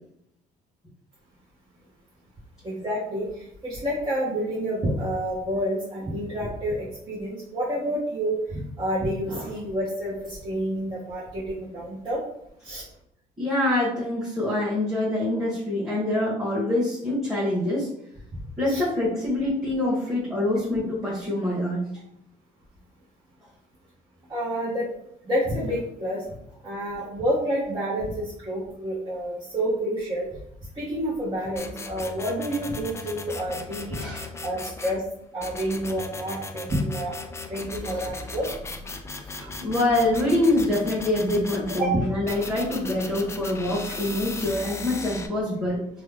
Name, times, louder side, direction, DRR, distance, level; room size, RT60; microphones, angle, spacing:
voice 1, 2.6-12.2 12.6-12.8 18.7-18.8 24.3-24.9 25.2-26.2 26.6-30.3 30.7-34.0 34.4-35.0 35.3-37.1 37.5-38.5 39.2-39.6 41.8-41.9 43.9-44.0, equal, 25° right, -9 dB, 1.2 m, -29 dB
voice 2, 13.4-17.9 18.6-21.9 33.9-34.3 39.6-45.8, left 1 dB, ahead, -10 dB, 1.4 m, -25 dB
sound 1, 31.6-35.0 35.4-41.9 42.3-45.3, left 3 dB, 15° left, 0.3 m, -37 dB
3.1 x 2.3 x 3.5 m, 0.75 s
cardioid pair, 110°, 17 cm